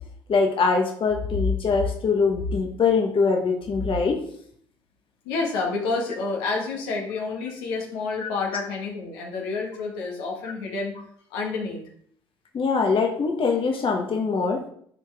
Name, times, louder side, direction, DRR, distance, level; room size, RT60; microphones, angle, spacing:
voice 1, 0.3-4.2 8.2-8.3 12.5-14.6, left 4 dB, 45° left, 3 dB, 1.3 m, -23 dB
voice 2, 5.3-10.9 11.3-11.8, left 4 dB, 75° left, -1 dB, 1.7 m, -29 dB
10.5 x 4.6 x 3.5 m, 0.63 s
hypercardioid pair, 55°, 13 cm